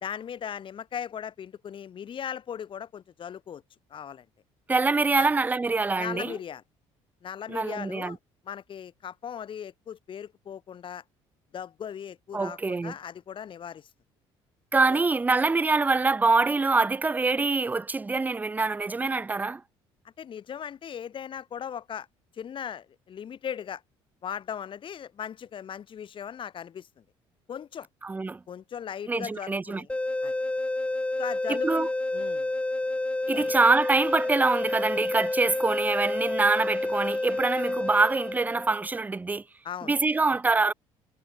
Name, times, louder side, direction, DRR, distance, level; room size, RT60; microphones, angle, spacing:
voice 1, 0.0-3.6 3.9-4.3 5.1-5.3 6.0-6.6 7.2-8.2 8.4-11.0 11.5-13.9 14.9-15.0 20.2-22.1 22.3-23.8 24.2-27.0 27.5-27.9 28.5-29.9 30.2-30.3 31.2-31.9 32.1-32.5 33.3-33.5 39.6-39.9, left 8 dB, 45° left, 1.4 m, -38 dB
voice 2, 4.7-6.4 7.5-8.2 12.3-12.9 14.7-19.6 28.0-28.4 29.1-29.8 31.5-31.9 33.3-39.4 39.8-40.7, right 3 dB, 15° right, 0.4 m, -25 dB
sound 1, 29.9-38.8, left 2 dB, 10° left, 1.0 m, -29 dB
supercardioid pair, 75°, 12 cm